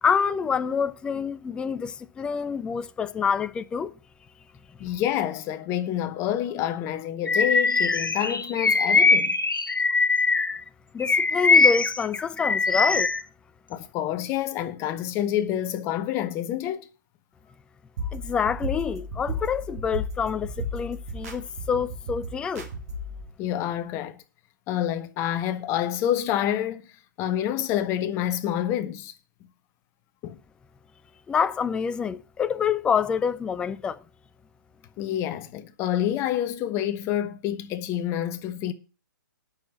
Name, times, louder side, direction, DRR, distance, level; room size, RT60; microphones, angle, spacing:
voice 1, 0.0-3.9 4.8-4.9 10.9-13.1 18.1-22.7 31.3-34.0, left 6 dB, 10° left, 0.4 m, -27 dB
voice 2, 4.8-9.4 13.7-16.9 23.4-24.2 24.7-26.8 27.2-29.1 30.2-30.4 35.0-38.7, left 11 dB, 25° left, 1.1 m, -28 dB
Bird vocalization bird call bird song, 7.3-10.6 11.0-13.2, left 4 dB, 85° left, 1.1 m, -21 dB
sound 1, 18.0-23.2, equal, 50° right, 3.3 m, -34 dB
8.9 x 6.6 x 7.3 m
figure-of-eight pair, 130°, 11 cm